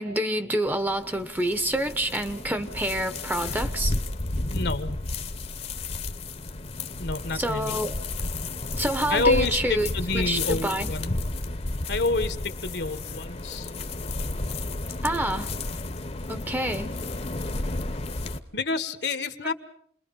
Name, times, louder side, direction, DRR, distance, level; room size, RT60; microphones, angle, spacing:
voice 1, 0.0-3.9 7.3-8.0 8.7-10.9 15.0-15.5 16.3-17.0, right 1 dB, 10° right, 0.9 m, -27 dB
sound 1, 0.7-18.4, left 2 dB, 40° left, 1.0 m, -32 dB
voice 2, 4.5-5.0 7.0-7.7 9.1-11.1 11.9-13.7 18.5-19.5, left 3 dB, 70° left, 1.4 m, -28 dB
28.5 x 21.5 x 5.4 m
head